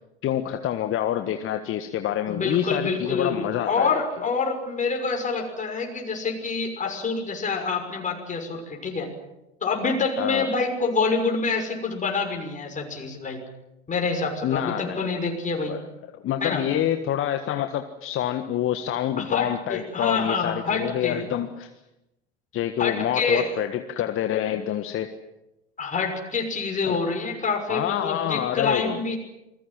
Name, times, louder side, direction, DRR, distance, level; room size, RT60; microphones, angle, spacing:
voice 1, 0.2-4.0 10.2-10.5 14.4-15.0 15.7-15.8 16.1-21.7 22.5-25.1 26.9-27.0 27.7-29.0, left 11 dB, 40° left, 7 dB, 1.6 m, -27 dB
voice 2, 2.3-9.1 9.6-13.4 13.9-15.7 16.4-16.6 19.2-21.2 22.8-23.5 25.8-29.2, left 4 dB, 25° left, 2 dB, 6.3 m, -26 dB
28.5 x 22.0 x 7.5 m, 0.92 s
figure-of-eight pair, 75°, 32 cm